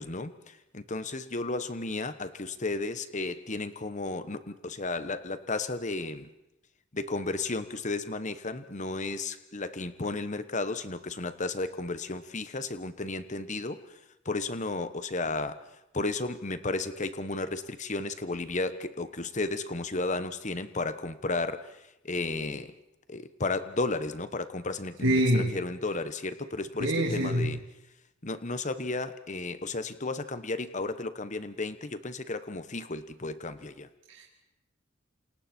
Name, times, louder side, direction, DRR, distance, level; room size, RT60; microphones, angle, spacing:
voice 1, 0.0-6.3 6.9-14.0 14.2-15.7 15.9-22.7 23.1-27.6 28.2-33.9, left 3 dB, 40° left, 12 dB, 1.2 m, -33 dB
voice 2, 25.0-25.5 26.8-27.5 34.1-34.2, equal, 70° right, -3 dB, 3.3 m, -25 dB
28.5 x 27.5 x 4.5 m, 0.91 s
head